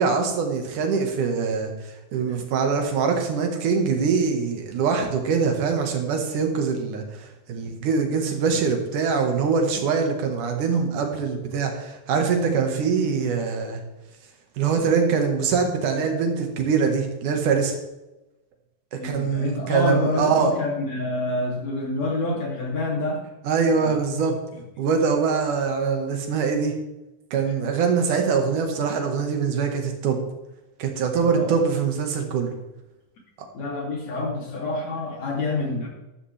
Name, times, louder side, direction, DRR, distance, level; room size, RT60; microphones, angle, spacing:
voice 1, 0.0-1.7 2.1-13.8 14.6-17.7 18.9-20.5 23.4-24.4 24.8-26.7 27.3-30.2 30.8-32.5, right 5 dB, 80° right, 4 dB, 3.1 m, -23 dB
voice 2, 19.0-23.2 23.8-24.2 31.2-31.5 33.5-35.9, left 2 dB, 60° left, -2 dB, 4.0 m, -27 dB
13.0 x 12.5 x 3.4 m, 0.99 s
omnidirectional pair, 3.5 m